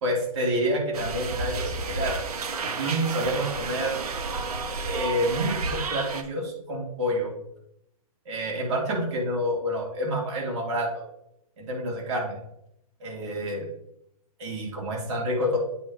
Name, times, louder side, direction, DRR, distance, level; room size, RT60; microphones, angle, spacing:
voice 1, 0.0-2.2 2.6-4.0 4.8-7.3 8.3-11.0 11.6-12.4 13.0-13.7 14.4-15.6, equal, 50° right, -2 dB, 2.7 m, -28 dB
sound 1, 0.9-6.2, right 4 dB, 80° right, 1.0 m, -31 dB
8.5 x 3.2 x 5.1 m, 0.79 s
hypercardioid pair, 145°, 19 cm